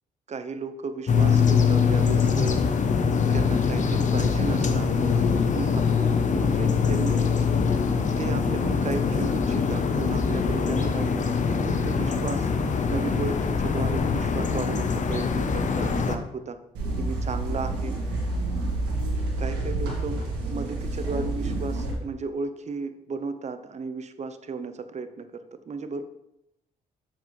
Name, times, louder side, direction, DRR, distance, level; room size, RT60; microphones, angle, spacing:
voice 1, 0.3-2.6 3.3-7.3 8.2-12.5 12.9-16.6 17.0-18.0 19.4-26.0, right 4 dB, 45° right, 10 dB, 0.7 m, -34 dB
sound 1, 1.1-16.2, left 5 dB, 50° left, 0.8 m, -23 dB
sound 2, 16.7-21.9, right 2 dB, 90° right, 1.6 m, -29 dB
7.0 x 5.9 x 3.2 m, 0.84 s
supercardioid pair, 55°, 17 cm